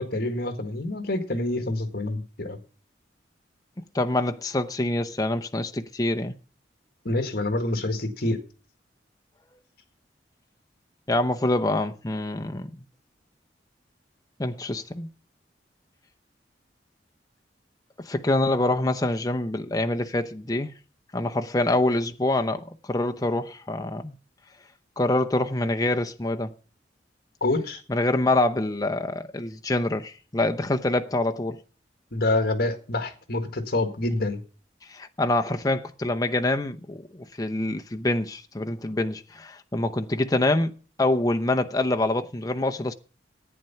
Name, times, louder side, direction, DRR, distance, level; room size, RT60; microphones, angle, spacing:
voice 1, 0.0-2.6 7.0-8.4 27.4-27.8 32.1-34.4, left 2 dB, 55° left, 1.7 m, -27 dB
voice 2, 3.9-6.3 11.1-12.7 14.4-15.1 18.0-20.7 21.1-24.1 25.0-26.5 27.9-31.6 34.9-40.7 41.0-42.9, left 2 dB, 20° left, 0.8 m, -25 dB
11.0 x 9.1 x 5.6 m
head